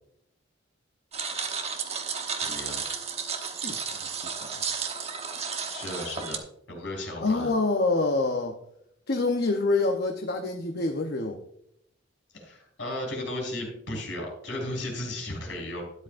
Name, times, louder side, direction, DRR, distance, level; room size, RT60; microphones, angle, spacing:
sound 1, 1.1-6.4, right 6 dB, 35° right, 1.0 m, -33 dB
voice 1, 2.4-2.8 5.7-6.4 6.7-7.5 12.3-15.8, left 1 dB, 75° left, 0 dB, 4.4 m, -35 dB
voice 2, 3.6-4.1 4.4-4.5 7.2-8.6 9.1-11.4, left 3 dB, 55° left, 4 dB, 0.8 m, -26 dB
12.5 x 10.0 x 2.5 m, 0.74 s
head